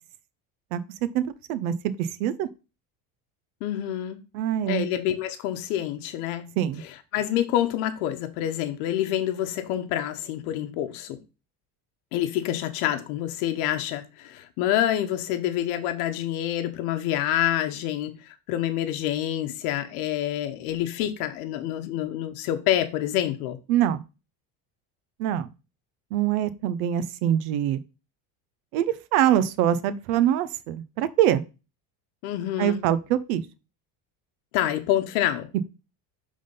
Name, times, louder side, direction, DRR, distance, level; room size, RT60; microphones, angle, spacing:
voice 1, 0.7-1.2 1.5-2.5 4.3-4.9 6.6-6.8 23.7-24.0 25.2-25.5 26.1-27.8 28.7-31.4 32.6-33.4, right 11 dB, 90° right, 0.7 m, -24 dB
voice 2, 3.6-4.2 4.7-6.5 7.1-11.2 12.1-23.6 32.2-32.8 34.5-35.5, left 12 dB, 85° left, 0.9 m, -27 dB
5.4 x 3.6 x 5.2 m
supercardioid pair, 115°, 43 cm